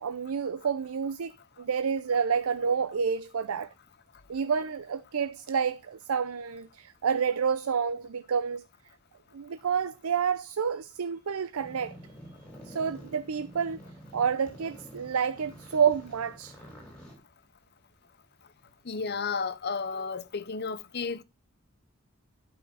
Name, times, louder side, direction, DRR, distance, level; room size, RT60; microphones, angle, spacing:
voice 1, 0.0-3.7 4.3-8.6 9.3-12.0 12.7-13.8 14.1-16.6, right 6 dB, 80° right, 0.5 m, -29 dB
sound 1, 11.6-17.2, equal, 5° left, 4.4 m, -48 dB
voice 2, 18.8-21.2, left 5 dB, 50° left, 0.8 m, -32 dB
12.0 x 5.7 x 4.0 m
head